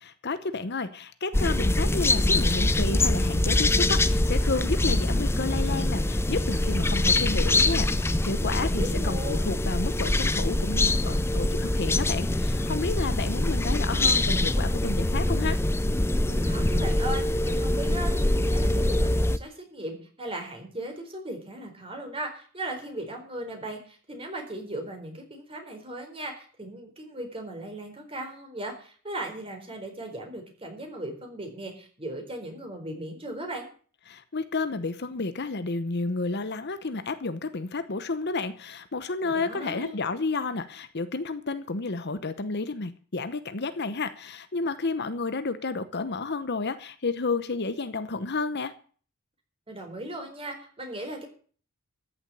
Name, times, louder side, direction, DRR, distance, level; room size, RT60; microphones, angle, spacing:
voice 1, 0.0-15.6 34.1-48.7, left 3 dB, 50° left, 0.9 m, -31 dB
sound 1, 1.3-19.4, left 1 dB, 10° left, 0.5 m, -24 dB
voice 2, 8.6-9.4 16.2-33.7 39.2-40.0 49.7-51.3, right 1 dB, 25° right, 4.1 m, -37 dB
14.0 x 7.1 x 8.5 m
head